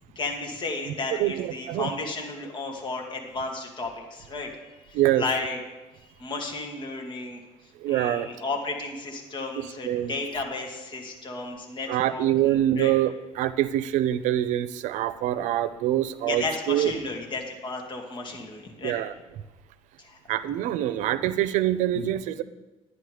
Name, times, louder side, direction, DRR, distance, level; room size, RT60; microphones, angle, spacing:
voice 1, 0.2-5.6 6.0-7.4 7.9-12.9 16.3-19.0 20.0-20.2 21.9-22.1, left 3 dB, 40° left, 1 dB, 2.1 m, -33 dB
voice 2, 1.1-1.9 4.9-5.2 7.8-8.3 9.6-10.1 11.9-13.1 13.4-16.9 18.8-19.1 20.3-22.4, right 13 dB, 90° right, 14 dB, 0.6 m, -25 dB
11.0 x 9.8 x 4.9 m, 1.2 s
cardioid pair, 110°, 12 cm